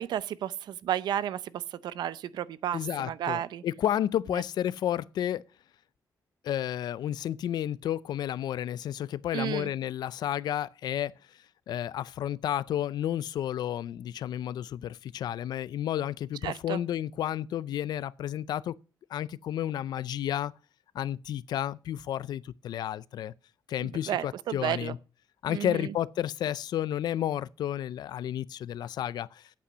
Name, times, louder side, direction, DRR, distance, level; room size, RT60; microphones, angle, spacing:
voice 1, 0.0-3.6 9.3-9.7 16.4-16.8 24.1-24.9 25.5-25.9, right 11 dB, 80° right, 0.6 m, -32 dB
voice 2, 2.7-5.4 6.4-11.1 11.7-18.8 19.1-20.5 20.9-23.3 23.7-25.0 25.4-29.4, left 11 dB, 75° left, 0.5 m, -31 dB
8.6 x 8.4 x 6.2 m
cardioid pair, 140°, 7 cm